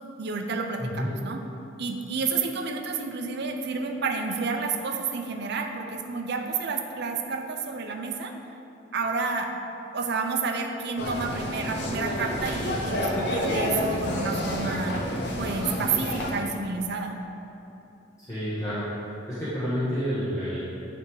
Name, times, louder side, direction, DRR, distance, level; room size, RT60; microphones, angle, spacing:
voice 1, 0.2-1.4 1.8-8.3 8.9-9.5 9.9-15.0 15.4-17.2, right 4 dB, 60° right, 4 dB, 0.6 m, -30 dB
voice 2, 0.8-1.1 18.3-18.9 19.3-20.8, equal, 15° left, -12 dB, 1.4 m, -29 dB
sound 1, 11.0-16.3, left 1 dB, 60° left, 0.8 m, -29 dB
9.1 x 3.6 x 4.7 m, 3.0 s
head